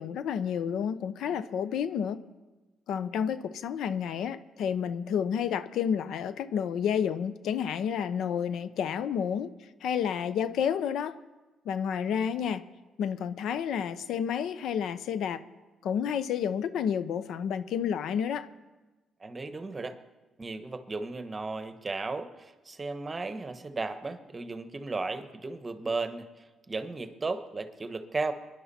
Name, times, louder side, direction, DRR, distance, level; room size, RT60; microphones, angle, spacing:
voice 1, 0.0-2.2 2.9-9.5 9.8-11.2 11.7-12.7 13.0-15.4 15.8-18.5, left 8 dB, 80° left, 14 dB, 0.6 m, -30 dB
voice 2, 19.2-20.0 20.4-26.3 26.7-28.3, right 3 dB, 25° right, 10 dB, 1.1 m, -35 dB
22.5 x 10.5 x 4.2 m, 1.2 s
cardioid pair, 90°, 0 cm